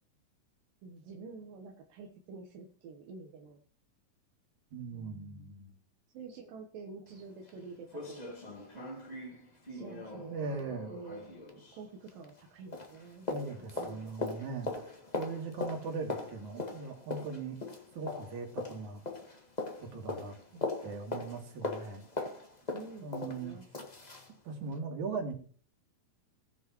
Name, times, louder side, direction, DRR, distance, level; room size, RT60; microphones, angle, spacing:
voice 1, 0.8-3.6 4.9-5.5 6.1-8.2 9.7-10.5 10.9-11.2 11.7-13.3 13.6-14.6 20.5-20.7 22.7-23.6, right 4 dB, 80° right, 2 dB, 2.8 m, -48 dB
voice 2, 4.7-5.7 10.1-10.9 13.3-17.6 17.9-19.0 19.8-20.4 20.8-22.0 23.0-23.6 24.4-25.3, right 4 dB, 60° right, 1 dB, 3.8 m, -39 dB
sound 1, 7.1-7.2 7.5-7.6 7.9-12.5 12.7-24.3 24.7-24.8, left 2 dB, 90° left, 0.3 m, -41 dB
20.0 x 7.2 x 3.0 m, 0.43 s
omnidirectional pair, 3.9 m